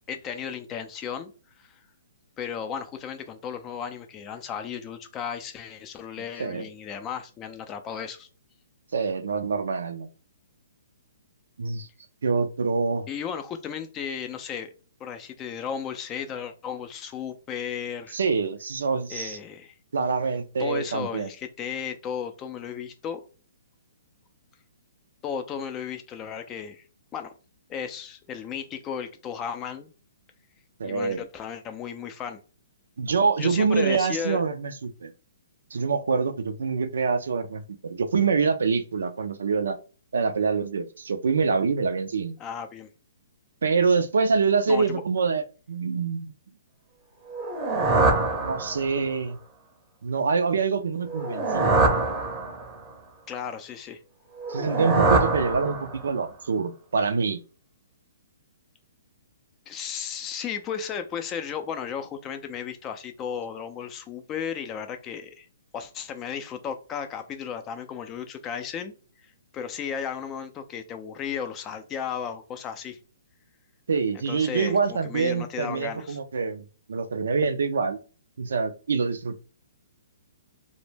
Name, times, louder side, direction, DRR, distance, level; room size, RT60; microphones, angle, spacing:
voice 1, 0.1-1.3 1.6-1.7 2.4-8.3 13.1-14.7 15.0-18.2 19.1-19.8 20.6-23.2 25.2-26.8 27.1-27.3 27.7-29.9 30.8-32.4 33.4-34.4 42.4-42.9 44.7-45.0 53.3-54.0 59.7-65.5 65.7-68.9 69.5-73.0 74.1-76.2, left 7 dB, 25° left, 0.3 m, -34 dB
voice 2, 8.9-10.1 11.6-11.9 12.2-13.1 18.1-19.4 19.9-21.3 30.8-31.2 33.0-35.1 35.7-39.8 40.1-42.4 43.6-46.3 48.4-49.4 50.0-51.8 54.5-57.4 73.9-78.0 78.4-79.4, right 5 dB, 75° right, 0.3 m, -25 dB
sound 1, 47.3-49.1 51.0-52.9 54.4-56.2, right 3 dB, 20° right, 0.6 m, -24 dB
2.1 x 2.0 x 3.2 m
hypercardioid pair, 140°, 0 cm